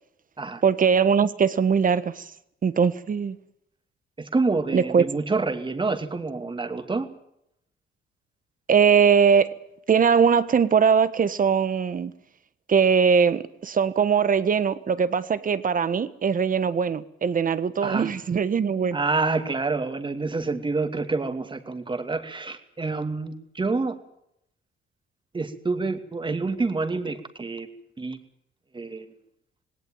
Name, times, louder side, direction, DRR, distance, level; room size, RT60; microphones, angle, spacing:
voice 1, 0.6-2.3 2.6-3.4 4.7-5.0 8.7-9.6 9.9-12.1 12.7-19.0, right 6 dB, 45° right, 1.5 m, -21 dB
voice 2, 4.2-7.1 17.8-18.1 18.9-24.0 25.3-27.7 28.0-28.2 28.7-29.1, right 3 dB, 25° right, 2.6 m, -27 dB
18.5 x 18.0 x 9.1 m
cardioid pair, 90°, 20 cm